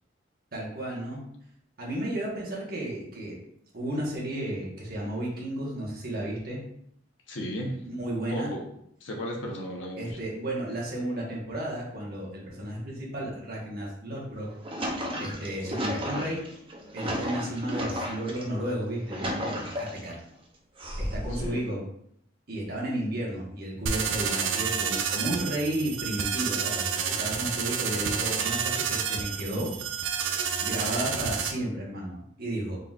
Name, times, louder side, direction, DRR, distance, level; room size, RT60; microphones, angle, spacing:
voice 1, 0.5-1.2 1.8-3.4 3.7-6.6 7.8-8.5 10.0-14.5 15.2-16.4 16.9-20.2 21.0-21.8 22.5-29.7 30.6-32.8, right 1 dB, 55° right, -4 dB, 1.2 m, -33 dB
voice 2, 7.3-7.8 8.3-8.6 9.0-10.2 21.3-21.7, equal, 90° left, 0 dB, 0.9 m, -35 dB
sound 1, 14.3-18.4 18.9-20.1 20.8-21.5, equal, 30° right, 0.6 m, -33 dB
sound 2, 23.9-31.5, right 6 dB, 80° right, 0.5 m, -29 dB
3.8 x 3.8 x 2.4 m, 0.73 s
head